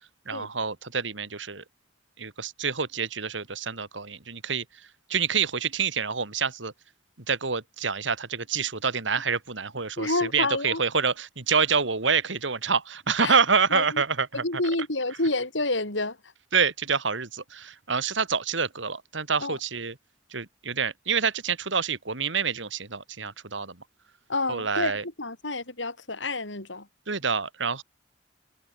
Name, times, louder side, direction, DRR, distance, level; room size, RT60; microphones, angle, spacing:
voice 1, 0.3-1.6 2.2-6.7 7.3-14.4 16.5-20.0 20.3-23.8 24.5-25.0 27.1-27.8, right 5 dB, 85° right, 2.4 m, -27 dB
voice 2, 10.0-10.8 13.2-13.4 13.7-14.0 14.3-16.3 19.4-19.6 24.3-26.9, left 2 dB, 85° left, 6.8 m, -29 dB
head